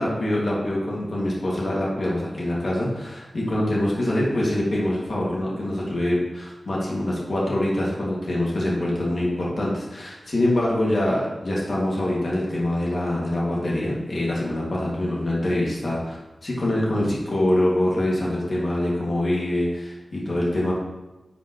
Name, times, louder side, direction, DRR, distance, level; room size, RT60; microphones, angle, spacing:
voice 1, 0.0-16.2 16.4-20.7, left 1 dB, 55° left, -5 dB, 2.1 m, -24 dB
10.0 x 5.5 x 3.1 m, 1.1 s
wide cardioid pair, 115°, 0 cm